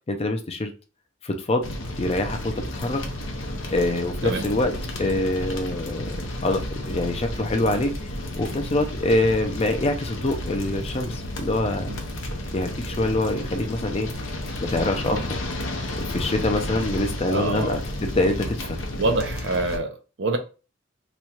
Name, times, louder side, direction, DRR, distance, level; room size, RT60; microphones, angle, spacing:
voice 1, 0.1-0.7 1.2-1.7 2.0-3.0 3.7-4.7 5.0-6.1 6.4-7.9 8.4-11.9 12.5-14.1 14.6-15.4 15.9-18.8, left 2 dB, 30° left, 0.5 m, -25 dB
sound 1, 1.6-19.8, left 1 dB, 75° left, 0.8 m, -32 dB
voice 2, 17.3-17.8 19.0-20.4, right 2 dB, 65° right, 0.6 m, -26 dB
3.1 x 2.4 x 4.2 m
head